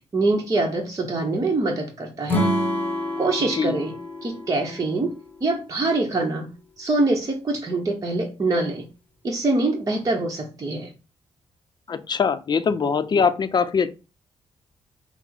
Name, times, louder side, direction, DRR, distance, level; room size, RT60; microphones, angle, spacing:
voice 1, 0.1-2.5 3.2-3.9 4.2-5.1 5.4-6.5 6.8-8.9 9.2-10.9, right 2 dB, 35° right, 0 dB, 0.9 m, -24 dB
Acoustic guitar / Strum, 2.3-5.6, equal, 15° left, 1.1 m, -27 dB
voice 2, 11.9-13.9, left 6 dB, 40° left, 12 dB, 0.5 m, -22 dB
5.9 x 2.0 x 4.4 m, 0.32 s
cardioid pair, 90°, 11 cm